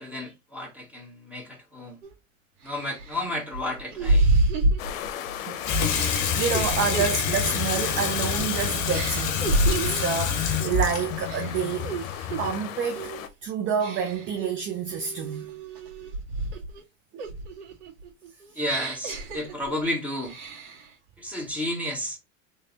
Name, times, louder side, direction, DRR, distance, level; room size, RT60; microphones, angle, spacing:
voice 1, 0.0-2.0 2.6-4.3 18.6-20.3 21.2-22.2, left 1 dB, 5° right, 1.9 m, -32 dB
sound 1, 2.0-2.1 2.6-5.4 5.9-8.5 8.9-10.1 10.6-10.9 11.2-12.5 12.9-13.3 13.8-14.4 14.9-16.8 17.2-19.9 20.2-20.9, right 2 dB, 50° right, 1.8 m, -28 dB
sound 2, 4.8-13.3, left 10 dB, 70° left, 0.8 m, -37 dB
voice 2, 5.5-6.0 6.3-11.9 12.4-13.1 13.4-15.5 17.1-17.3, right 6 dB, 30° right, 0.6 m, -29 dB
Water tap faucet / Sink (filling or washing), 5.6-12.7, left 7 dB, 45° left, 1.0 m, -27 dB
3.2 x 3.2 x 2.8 m
hypercardioid pair, 105°, 41 cm